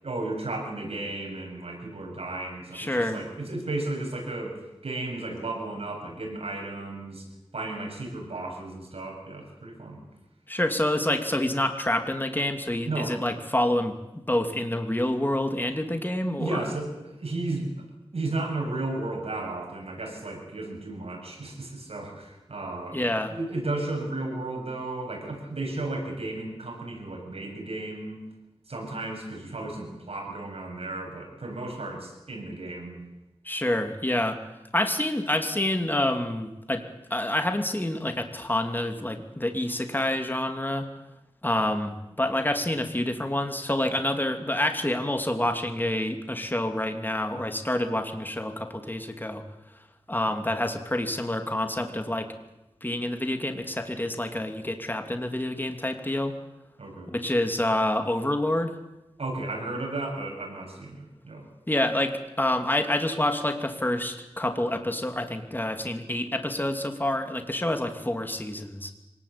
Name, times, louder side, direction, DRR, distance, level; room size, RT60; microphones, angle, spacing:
voice 1, 0.0-7.3 7.5-10.0 12.9-13.1 16.4-17.8 18.1-23.0 23.3-28.2 28.7-33.0 56.8-57.2 59.2-61.5, right 2 dB, 75° right, 1 dB, 8.0 m, -34 dB
voice 2, 2.7-3.2 10.5-16.6 22.9-23.3 33.4-34.4 34.7-36.8 37.1-40.9 41.4-49.4 50.1-52.3 52.8-56.3 57.1-58.8 61.7-68.9, left 1 dB, 20° left, 6 dB, 2.8 m, -27 dB
25.0 x 19.0 x 8.7 m, 0.97 s
wide cardioid pair, 55°, 10 cm